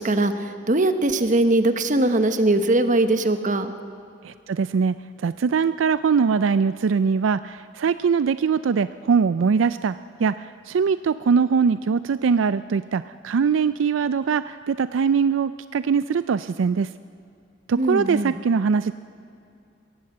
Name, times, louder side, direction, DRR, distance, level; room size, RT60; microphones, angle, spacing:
voice 1, 0.0-3.7 17.8-18.4, right 2 dB, 40° right, 9 dB, 1.2 m, -21 dB
voice 2, 4.2-16.9 17.7-18.9, right 6 dB, 80° right, 14 dB, 0.4 m, -22 dB
22.0 x 16.5 x 7.9 m, 2.5 s
head